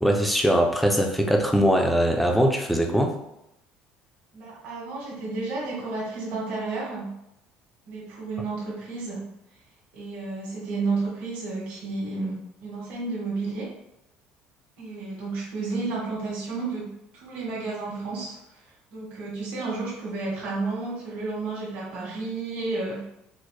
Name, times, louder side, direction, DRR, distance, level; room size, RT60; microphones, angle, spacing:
voice 1, 0.0-3.1, equal, ahead, 2 dB, 0.3 m, -21 dB
voice 2, 4.3-7.1 7.9-9.3 9.9-13.7 14.8-18.4 18.9-23.0, right 3 dB, 70° right, -5 dB, 1.4 m, -31 dB
4.2 x 2.1 x 3.1 m, 0.84 s
cardioid pair, 170°, 3 cm